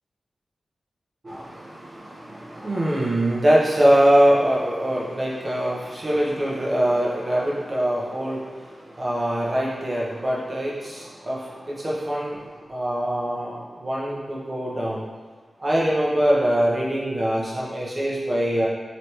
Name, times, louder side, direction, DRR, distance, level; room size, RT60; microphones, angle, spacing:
voice 1, 1.2-15.0 15.6-18.7, right 1 dB, 30° right, -5 dB, 0.9 m, -23 dB
4.0 x 3.2 x 3.0 m, 1.5 s
wide cardioid pair, 130°, 0 cm